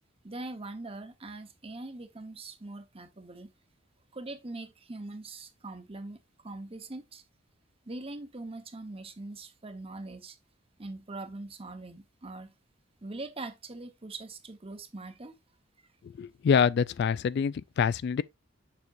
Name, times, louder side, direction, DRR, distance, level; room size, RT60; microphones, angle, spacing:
voice 1, 0.2-3.5 4.1-7.2 7.9-10.4 10.8-12.5 13.0-15.3, right 2 dB, 30° right, 1.0 m, -42 dB
voice 2, 16.0-18.2, left 6 dB, 55° left, 0.3 m, -26 dB
7.1 x 6.1 x 2.5 m
head